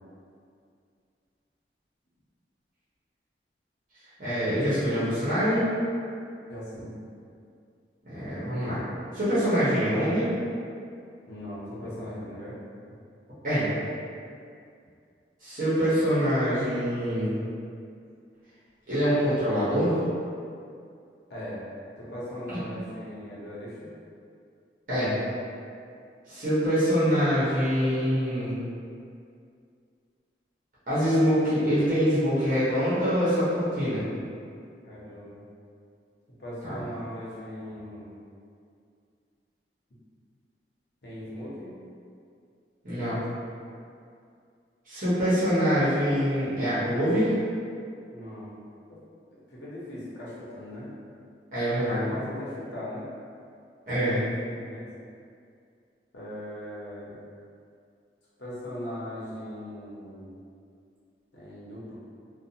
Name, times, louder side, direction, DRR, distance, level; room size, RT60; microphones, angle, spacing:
voice 1, 4.2-5.7 8.1-8.8 9.1-10.3 13.4-13.7 15.4-17.3 18.9-20.0 22.5-22.6 24.9-25.1 26.3-28.6 30.9-34.0 36.6-36.8 42.8-43.2 44.9-47.3 51.5-52.1 53.9-54.2, equal, 45° right, -14 dB, 0.9 m, -24 dB
voice 2, 6.5-6.9 11.3-12.6 21.3-21.7 22.0-23.9 34.8-35.4 36.4-38.1 41.0-41.7 48.1-48.6 48.9-49.0 49.5-50.9 51.7-53.0 54.4-54.9 56.1-57.2 58.4-60.3 61.3-62.0, left 1 dB, 80° left, -8 dB, 0.8 m, -39 dB
2.5 x 2.2 x 2.8 m, 2.4 s
head